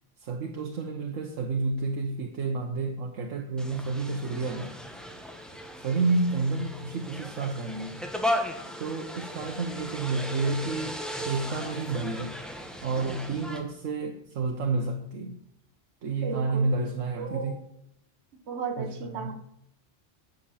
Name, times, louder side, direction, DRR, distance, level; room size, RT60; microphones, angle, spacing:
voice 1, 0.2-4.7 5.8-8.0 8.8-11.0 11.2-12.3 12.8-15.4 16.0-17.5 18.8-19.3, right 3 dB, 80° right, 1.3 m, -30 dB
sound 1, 3.6-13.6, left 1 dB, ahead, 1.2 m, -36 dB
voice 2, 16.2-16.9 17.2-17.6 18.5-19.5, right 5 dB, 60° right, 1.4 m, -35 dB
10.0 x 6.5 x 7.1 m
omnidirectional pair, 1.3 m